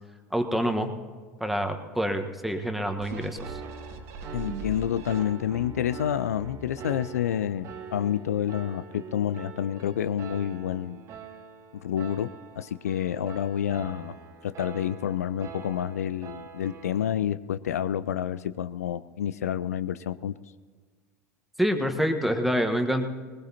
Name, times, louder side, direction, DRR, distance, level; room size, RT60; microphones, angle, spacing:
voice 1, 0.3-0.9 1.4-3.6 21.6-23.1, equal, ahead, 5 dB, 1.3 m, -27 dB
sound 1, 3.0-5.7 6.2-6.3, right 4 dB, 65° right, 1.9 m, -40 dB
Piano, 3.4-17.1, right 6 dB, 40° right, 1.3 m, -44 dB
voice 2, 4.3-11.0 11.8-14.2 14.4-20.3, left 10 dB, 80° left, 14 dB, 0.4 m, -29 dB
20.5 x 20.0 x 2.9 m, 1.5 s
hypercardioid pair, 80°, 8 cm